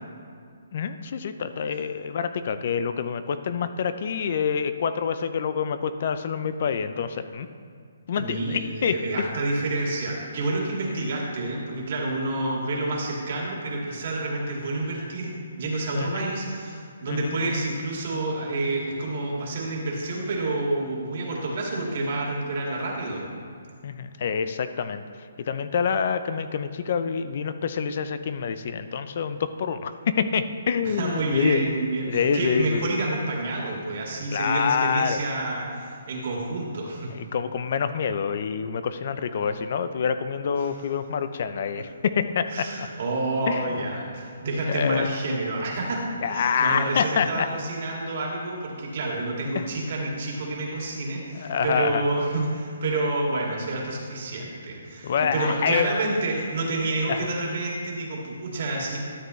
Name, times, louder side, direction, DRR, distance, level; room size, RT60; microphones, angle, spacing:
voice 1, 0.7-7.5 8.1-9.3 15.9-16.3 17.1-17.5 23.8-25.0 25.4-31.6 32.1-32.9 34.3-35.2 37.1-42.9 43.5-43.9 44.6-45.1 46.2-47.5 49.5-49.6 51.3-52.0 55.0-55.9 57.1-57.3, left 6 dB, 50° left, 11 dB, 0.4 m, -27 dB
voice 2, 8.1-23.2 30.8-37.1 40.6-40.7 42.5-59.0, right 2 dB, 50° right, -2 dB, 2.2 m, -28 dB
12.5 x 6.9 x 3.2 m, 2.2 s
hypercardioid pair, 160°, 0 cm